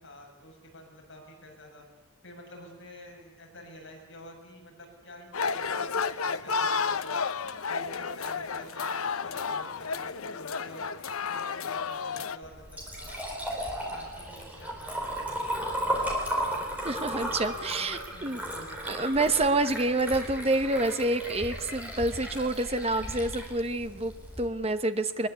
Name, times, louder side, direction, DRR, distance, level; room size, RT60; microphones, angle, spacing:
voice 1, 0.0-1.8 2.2-7.2 7.7-10.9 11.3-13.4 13.6-16.6 17.0-19.1, left 1 dB, 55° left, -1 dB, 7.0 m, -49 dB
sound 1, 5.3-12.4, left 5 dB, 75° left, 0.8 m, -31 dB
Liquid, 12.4-24.4, equal, 5° right, 4.2 m, -35 dB
voice 2, 16.8-18.4 18.8-25.3, right 2 dB, 25° right, 9 dB, 1.1 m, -28 dB
22.5 x 22.0 x 8.3 m, 1.1 s
head